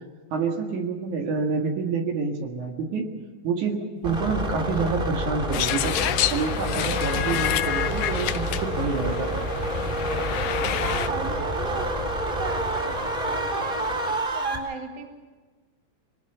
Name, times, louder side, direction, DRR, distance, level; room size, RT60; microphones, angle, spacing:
voice 1, 0.3-3.1 3.4-3.8 4.0-6.0 6.3-9.3, right 4 dB, 65° right, 3 dB, 3.3 m, -27 dB
sound 1, 4.0-14.6, right 1 dB, 15° right, 3.8 m, -28 dB
sound 2, 5.5-11.1, left 13 dB, 85° left, 1.4 m, -29 dB
voice 2, 10.8-15.1, right 4 dB, 35° right, 4 dB, 2.7 m, -37 dB
22.5 x 20.0 x 6.9 m, 1.4 s
omnidirectional pair, 3.8 m